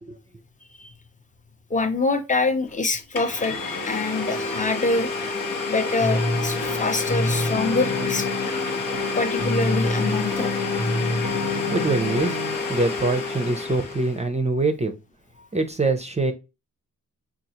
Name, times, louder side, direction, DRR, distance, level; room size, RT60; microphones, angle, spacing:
voice 1, 1.7-5.1 5.6-8.3 9.1-10.5, left 3 dB, 25° left, 0.6 m, -25 dB
Domestic sounds home sounds, 2.7-2.8 3.1-14.2, left 4 dB, 85° left, 1.1 m, -29 dB
Wind instrument woodwind instrument, 3.4-6.8 7.1-11.0, equal, ahead, 0.9 m, -44 dB
sound 1, 6.0-12.6, left 2 dB, 70° left, 1.2 m, -27 dB
voice 2, 11.7-12.4 12.7-15.0 15.5-16.3, right 3 dB, 20° right, 0.5 m, -24 dB
5.2 x 2.4 x 2.8 m
wide cardioid pair, 105°, 33 cm